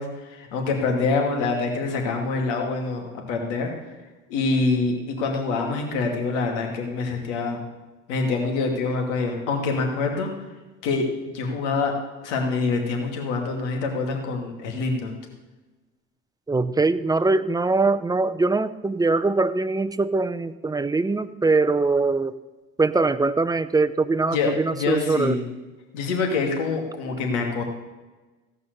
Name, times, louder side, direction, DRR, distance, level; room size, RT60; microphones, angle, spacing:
voice 1, 0.0-3.7 4.3-7.6 8.1-10.3 10.8-11.1 11.3-11.9 12.2-15.1 24.3-25.4 25.9-27.6, left 3 dB, 85° left, 2 dB, 2.5 m, -25 dB
voice 2, 16.5-22.3 22.8-25.4, right 3 dB, 10° right, 11 dB, 0.6 m, -22 dB
16.5 x 5.5 x 6.7 m, 1.2 s
supercardioid pair, 80°, 35 cm